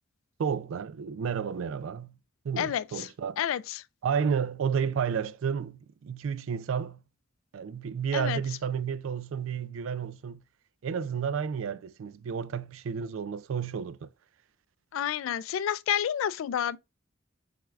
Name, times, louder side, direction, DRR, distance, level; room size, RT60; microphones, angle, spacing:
voice 1, 0.4-2.2 2.4-3.4 4.0-7.0 7.5-10.4 10.8-14.1, right 7 dB, 80° right, 0.4 m, -31 dB
voice 2, 2.6-3.1 3.4-3.8 8.1-8.4 14.9-16.8, left 10 dB, 85° left, 0.3 m, -29 dB
6.2 x 3.6 x 2.3 m
head